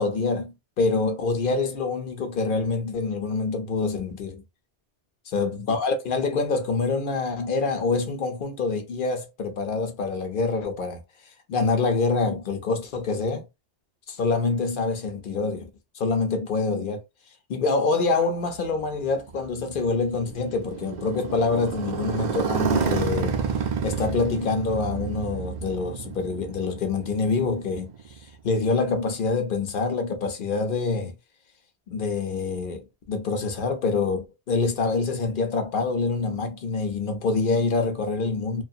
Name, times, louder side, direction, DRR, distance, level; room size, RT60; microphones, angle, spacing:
voice 1, 0.0-4.4 5.3-11.0 11.5-13.5 14.1-15.7 15.9-17.0 17.5-23.4 23.8-27.9 28.4-31.1 31.9-38.6, left 4 dB, 55° left, 0.7 m, -26 dB
Motorcycle, 18.5-28.5, right 6 dB, 55° right, 0.5 m, -30 dB
2.4 x 2.4 x 2.6 m
omnidirectional pair, 1.2 m